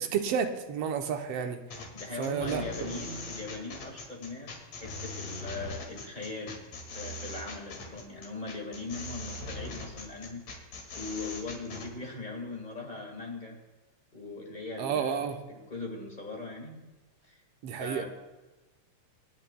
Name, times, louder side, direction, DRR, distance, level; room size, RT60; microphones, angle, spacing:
voice 1, 0.0-1.6 2.2-3.0 14.8-15.4 17.6-18.1, right 7 dB, 70° right, 5 dB, 1.6 m, -31 dB
sound 1, 1.7-11.9, left 2 dB, 65° left, 3.2 m, -41 dB
voice 2, 1.9-6.6 6.9-10.5 10.9-13.6 14.1-16.8 17.3-17.4 17.7-18.1, left 3 dB, 25° left, 0 dB, 1.0 m, -40 dB
27.0 x 9.3 x 2.2 m, 1.2 s
omnidirectional pair, 3.4 m